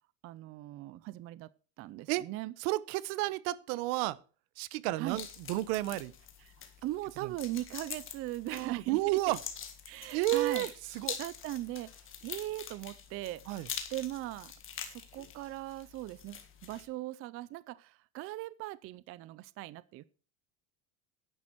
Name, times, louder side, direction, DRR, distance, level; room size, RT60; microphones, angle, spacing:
voice 1, 0.2-1.5 1.8-2.5 5.0-5.2 6.4-6.6 6.8-9.4 9.9-10.7 11.2-11.9 12.2-13.4 13.9-14.5 14.9-20.0, right 16 dB, 35° right, 0.4 m, -39 dB
voice 2, 2.6-4.2 4.6-6.1 8.5-9.4 10.1-10.7 10.9-11.2 13.5-13.7, right 18 dB, 85° right, 1.0 m, -31 dB
sound 1, 5.1-16.9, left 8 dB, 30° left, 1.8 m, -45 dB
11.0 x 9.8 x 4.5 m
cardioid pair, 165°, 43 cm